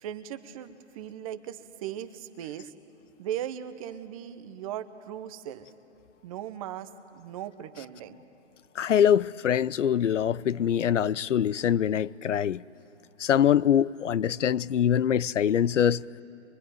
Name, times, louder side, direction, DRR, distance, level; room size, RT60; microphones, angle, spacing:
voice 1, 0.0-2.7 3.2-5.7 6.2-8.2, right 10 dB, 30° right, 1.0 m, -38 dB
voice 2, 8.8-12.6 13.2-16.0, left 9 dB, 85° left, 0.6 m, -24 dB
23.5 x 23.0 x 9.2 m
hypercardioid pair, 145°, 36 cm